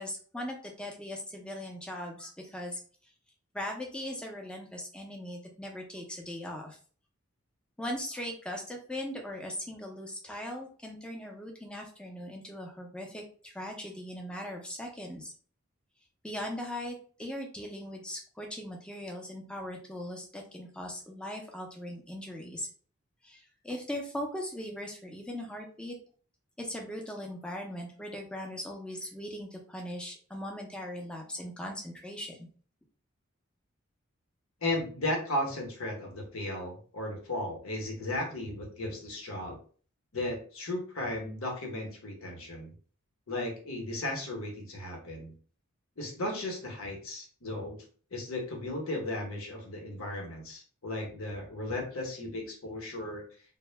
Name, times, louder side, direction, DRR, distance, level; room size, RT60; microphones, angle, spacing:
voice 1, 0.0-2.8 3.5-6.8 7.8-15.3 16.2-22.7 23.2-26.0 26.6-32.5, left 1 dB, 5° left, 1 dB, 0.4 m, -39 dB
voice 2, 34.6-39.6 40.1-42.7 43.3-45.3 46.0-47.8 48.1-53.2, left 1 dB, 85° left, 1 dB, 0.9 m, -35 dB
2.1 x 2.0 x 3.2 m, 0.43 s
head